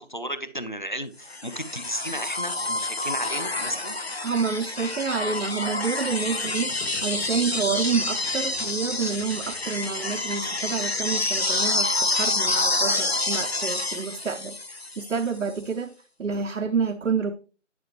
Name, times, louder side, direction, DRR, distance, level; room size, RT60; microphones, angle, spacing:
voice 1, 0.0-3.9, equal, 40° left, 0.6 m, -34 dB
sound 1, 1.3-15.3 16.8-16.9, left 2 dB, 55° left, 1.2 m, -28 dB
voice 2, 4.2-6.8 7.0-14.6 15.0-15.9 16.2-17.3, right 5 dB, 85° right, 0.7 m, -28 dB
Squeak, 6.0-11.4, left 1 dB, 85° left, 2.3 m, -46 dB
10.5 x 5.3 x 2.9 m
figure-of-eight pair, 175°, 37 cm